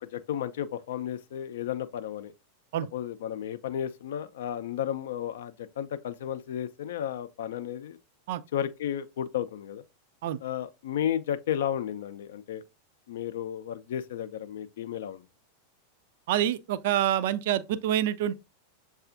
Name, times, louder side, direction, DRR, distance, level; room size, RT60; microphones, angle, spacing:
voice 1, 0.0-2.3 2.9-8.0 8.5-9.8 10.4-12.6 13.1-15.2, left 10 dB, 60° left, 0.4 m, -33 dB
voice 2, 16.3-18.3, right 11 dB, 50° right, 0.3 m, -27 dB
7.0 x 2.4 x 2.4 m
figure-of-eight pair, 90°, 0 cm